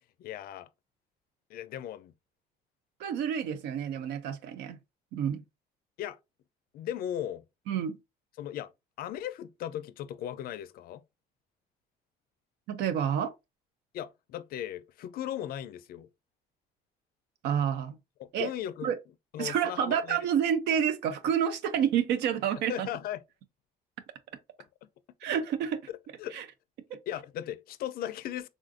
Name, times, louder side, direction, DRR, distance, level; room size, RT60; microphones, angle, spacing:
voice 1, 0.2-0.7 1.5-2.1 6.0-6.2 6.7-7.4 8.4-8.7 9.0-11.0 13.9-16.1 18.2-18.9 19.3-20.2 22.7-23.2 25.9-26.4 26.9-28.5, left 11 dB, 65° left, 0.4 m, -37 dB
voice 2, 3.0-4.8 5.1-5.4 7.7-8.0 12.7-13.3 17.4-18.0 18.3-18.5 18.8-18.9 19.4-22.9 25.2-25.8 26.3-26.4 26.9-27.0, right 8 dB, 80° right, 0.5 m, -29 dB
3.6 x 2.4 x 2.5 m
cardioid pair, 110°, 17 cm